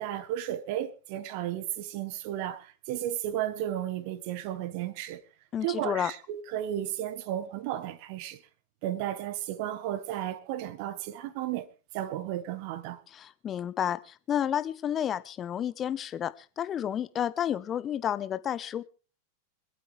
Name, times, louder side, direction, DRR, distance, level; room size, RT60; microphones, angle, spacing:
voice 1, 0.0-5.2 5.6-8.4 8.8-11.7 11.9-13.0, right 12 dB, 45° right, 1.4 m, -34 dB
voice 2, 5.5-6.1 13.1-18.8, left 10 dB, 25° left, 0.9 m, -31 dB
26.0 x 8.8 x 3.3 m
figure-of-eight pair, 90°, 0 cm